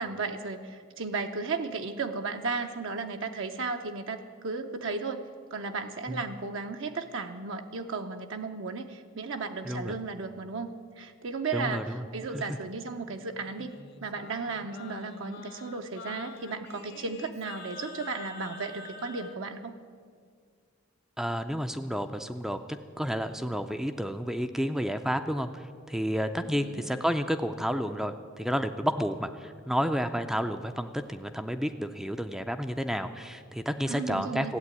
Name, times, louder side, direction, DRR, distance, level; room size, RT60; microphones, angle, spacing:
voice 1, 0.0-5.2 5.5-19.8 26.6-26.8 33.9-34.5, right 4 dB, 65° right, 5 dB, 0.7 m, -35 dB
voice 2, 9.6-10.0 11.5-12.0 12.3-12.4 21.2-22.6 23.0-34.6, equal, ahead, 7 dB, 0.4 m, -31 dB
Singing, 13.3-19.4, left 3 dB, 55° left, 1.1 m, -45 dB
14.5 x 8.3 x 9.6 m, 2.1 s
head